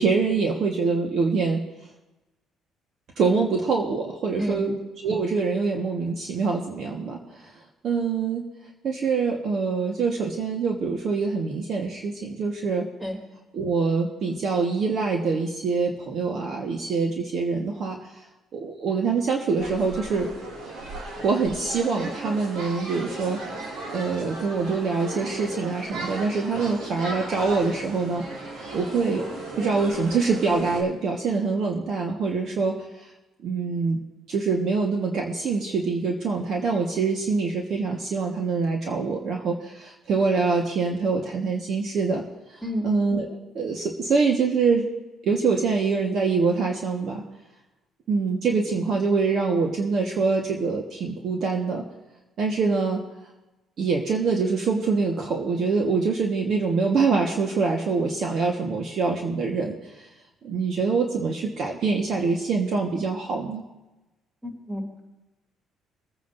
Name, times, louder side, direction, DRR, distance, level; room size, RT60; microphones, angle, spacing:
voice 1, 0.0-1.6 3.2-4.7 5.0-7.2 7.8-8.4 8.8-12.8 13.5-18.0 18.5-20.3 21.2-23.4 23.9-28.2 28.7-29.2 29.6-32.8 33.4-34.0 34.3-42.2 42.8-44.9 45.2-47.2 48.1-51.8 52.4-53.0 53.8-59.7 60.4-63.6, right 4 dB, 55° right, 0 dB, 1.5 m, -24 dB
sound 1, 19.6-30.8, right 2 dB, 85° right, 2.7 m, -36 dB
voice 2, 64.4-65.0, equal, 15° right, 0 dB, 3.2 m, -30 dB
23.5 x 9.4 x 2.7 m, 1.0 s
cardioid pair, 125°, 0 cm